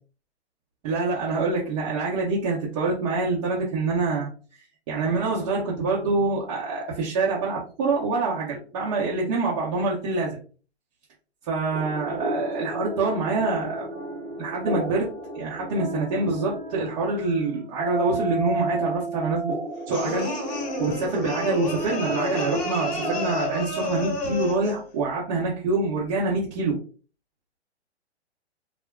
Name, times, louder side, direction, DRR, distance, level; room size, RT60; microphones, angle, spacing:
voice 1, 0.8-4.3 4.9-10.3 11.4-13.9 14.4-15.1 15.3-19.5 19.9-20.3 20.8-26.8, right 3 dB, 30° right, -6 dB, 0.7 m, -26 dB
sound 1, 11.7-23.5, right 2 dB, 85° right, 1.1 m, -33 dB
sound 2, 19.9-24.8, left 2 dB, 30° left, 0.9 m, -30 dB
3.6 x 2.1 x 2.2 m, 0.38 s
figure-of-eight pair, 120°, 34 cm